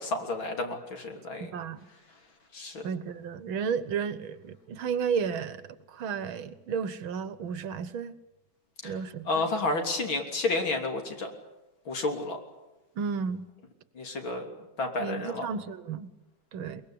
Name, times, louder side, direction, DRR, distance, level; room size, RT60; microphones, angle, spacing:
voice 1, 0.0-1.5 2.5-2.9 8.8-8.9 9.3-11.3 11.9-12.4 14.0-14.5 14.8-15.5, left 2 dB, 75° left, 3 dB, 4.0 m, -31 dB
voice 2, 1.4-1.8 2.8-5.6 5.9-8.1 8.8-9.5 13.0-13.5 15.0-16.1 16.5-16.8, right 6 dB, 85° right, 14 dB, 2.0 m, -32 dB
23.0 x 22.0 x 8.6 m, 1.0 s
omnidirectional pair, 2.2 m